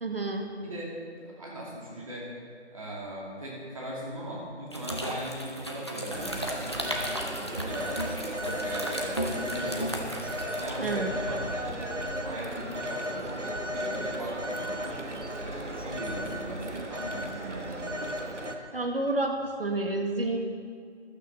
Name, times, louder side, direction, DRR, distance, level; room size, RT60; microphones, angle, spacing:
voice 1, 0.0-0.5 10.8-11.1 18.7-20.4, right 2 dB, 55° right, 3 dB, 1.6 m, -29 dB
voice 2, 0.6-2.3 2.7-6.9 7.5-8.0 8.6-10.0 10.5-11.9 12.2-15.0 15.4-18.1, right 1 dB, 30° right, -5 dB, 2.6 m, -39 dB
sound 1, 4.7-10.7, equal, 25° left, 0.8 m, -35 dB
Telephone, 6.1-18.6, equal, 85° right, 1.5 m, -35 dB
14.5 x 11.5 x 4.1 m, 2.1 s
figure-of-eight pair, 165°, 35 cm